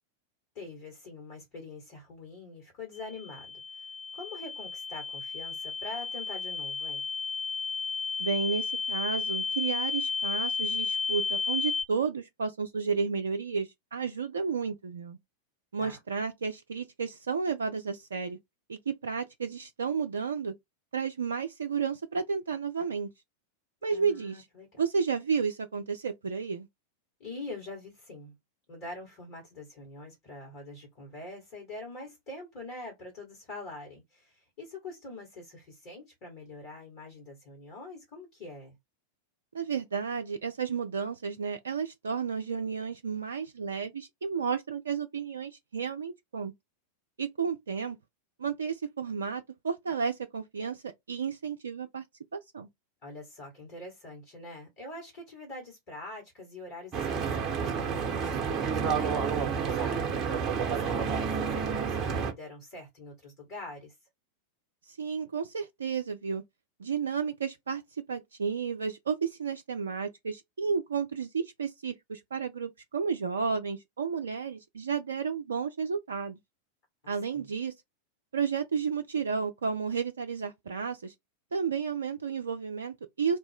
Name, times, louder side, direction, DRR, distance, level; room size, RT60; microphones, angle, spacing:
voice 1, 0.6-3.6 4.1-7.1 15.8-16.0 23.9-24.8 27.2-28.3 28.7-38.8 53.0-60.4 60.7-63.9 77.0-77.5, left 2 dB, 45° left, 1.7 m, -44 dB
sound 1, 3.0-11.8, left 5 dB, 20° left, 0.5 m, -33 dB
voice 2, 8.2-15.2 15.7-18.4 18.7-20.5 20.9-23.1 23.8-24.4 24.8-26.7 39.5-46.5 47.2-48.0 48.4-52.0 52.3-52.7 64.9-66.4 66.8-67.8 68.1-76.4 77.1-77.7 78.3-81.1 81.5-83.4, right 6 dB, 70° right, 0.3 m, -32 dB
Stream / Boat Water vehicle, 56.9-62.3, right 6 dB, 25° right, 0.8 m, -29 dB
2.7 x 2.1 x 3.4 m
figure-of-eight pair, 90°, 0 cm